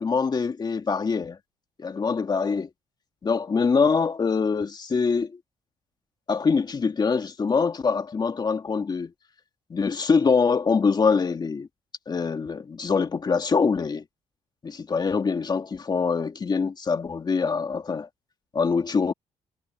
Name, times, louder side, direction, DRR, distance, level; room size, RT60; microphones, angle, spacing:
voice 1, 0.0-1.4 1.8-2.7 3.2-5.3 6.3-9.1 9.7-11.7 12.1-14.0 14.6-18.1 18.5-19.1, left 5 dB, 35° left, 2.4 m, -24 dB
cardioid pair, 80°, 12 cm